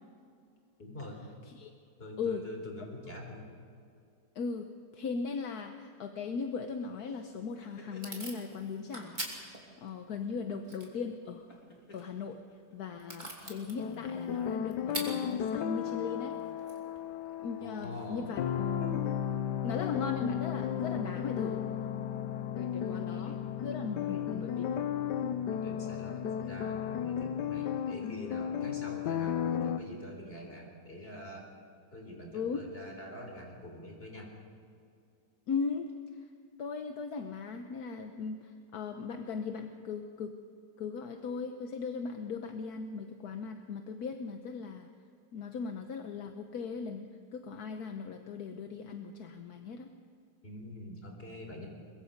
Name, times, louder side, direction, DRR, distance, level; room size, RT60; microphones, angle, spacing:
voice 1, 0.8-1.2 2.0-3.5 17.6-18.4 23.1-23.4 24.0-24.2 25.5-31.5 31.9-34.3 50.4-51.7, left 1 dB, 35° left, 1 dB, 4.2 m, -45 dB
voice 2, 4.3-11.5 11.9-12.4 12.7-16.4 17.4-18.4 18.9-19.1 19.6-21.7 22.6-24.6 32.3-32.7 35.5-35.9 36.6-40.4 40.8-44.9 45.3-49.9, left 5 dB, 70° left, 6 dB, 1.4 m, -38 dB
sound 1, 7.0-8.7 9.3-9.5 11.5-13.1, left 3 dB, 50° left, 3.4 m, -56 dB
Packing tape duct tape / Tearing, 7.1-17.9, right 1 dB, 25° right, 3.0 m, -47 dB
sound 2, 13.8-29.8, left 9 dB, 85° left, 1.4 m, -34 dB
22.5 x 22.0 x 5.3 m, 2.4 s
omnidirectional pair, 1.8 m